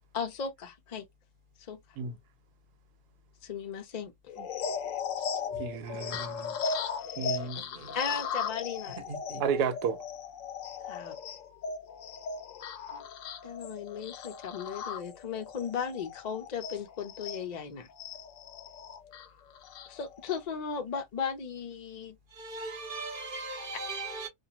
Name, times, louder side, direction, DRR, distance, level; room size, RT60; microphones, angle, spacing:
voice 1, 0.1-1.1 1.7-1.8 3.4-4.1 6.1-6.3 7.9-9.0 10.8-11.2 12.9-13.0 13.4-17.9 19.9-22.2 23.7-23.8, left 6 dB, 85° left, 0.3 m, -36 dB
sound 1, 4.3-17.4 18.0-20.4, left 6 dB, 65° left, 0.9 m, -37 dB
voice 2, 5.6-6.6 7.2-7.8 9.4-10.0, right 6 dB, 85° right, 1.1 m, -32 dB
voice 3, 7.5-7.9 9.1-9.4 22.4-24.3, right 3 dB, 40° right, 0.9 m, -39 dB
2.6 x 2.3 x 2.8 m
omnidirectional pair, 1.6 m